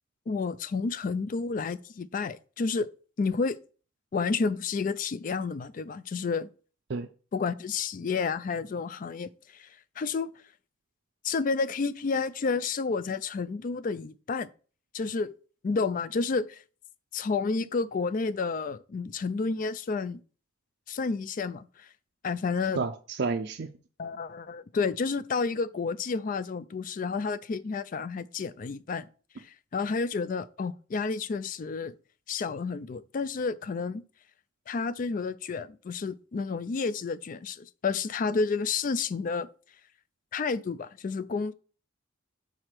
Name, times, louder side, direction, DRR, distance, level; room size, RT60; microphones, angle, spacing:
voice 1, 0.3-2.9 3.2-3.6 4.1-6.5 7.3-10.3 11.2-14.5 14.9-15.3 15.6-16.6 17.1-20.2 20.9-21.9 22.2-22.9 24.0-29.1 29.4-31.9 32.3-34.0 34.7-39.5 40.3-41.5, left 4 dB, 40° left, 0.3 m, -30 dB
voice 2, 22.8-23.7, right 4 dB, 55° right, 0.5 m, -30 dB
4.9 x 4.3 x 5.8 m
head